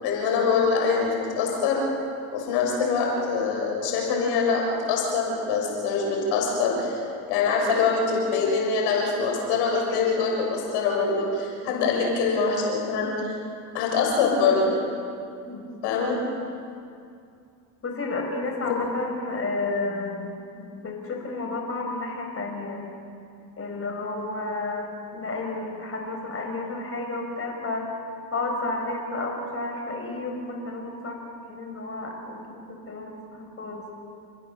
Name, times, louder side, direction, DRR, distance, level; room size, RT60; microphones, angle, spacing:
voice 1, 0.0-1.8 2.3-7.0 7.3-13.3 13.7-14.8 15.8-16.2, left 5 dB, 80° left, -1 dB, 6.4 m, -24 dB
voice 2, 11.7-12.0 15.5-15.6 15.9-16.0 17.8-22.8 23.6-27.9 28.3-31.2 31.5-33.9, left 2 dB, 35° left, 1 dB, 5.5 m, -31 dB
29.5 x 15.5 x 7.1 m, 2.4 s
supercardioid pair, 80°, 41 cm